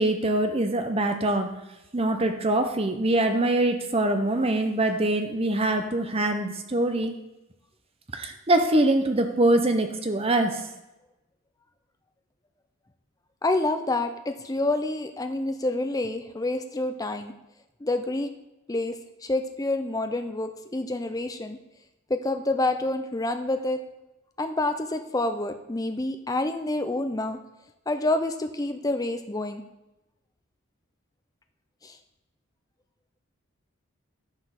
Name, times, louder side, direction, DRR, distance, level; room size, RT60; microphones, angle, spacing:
voice 1, 0.0-1.5 1.9-7.1 8.1-10.7, right 1 dB, 25° right, 6 dB, 0.7 m, -24 dB
voice 2, 13.4-17.3 17.8-18.3 18.7-19.0 19.2-21.6 22.1-23.8 24.4-27.4 27.9-29.6 31.8-32.0, left 2 dB, 15° left, 7 dB, 0.5 m, -28 dB
9.7 x 5.0 x 5.9 m, 0.96 s
head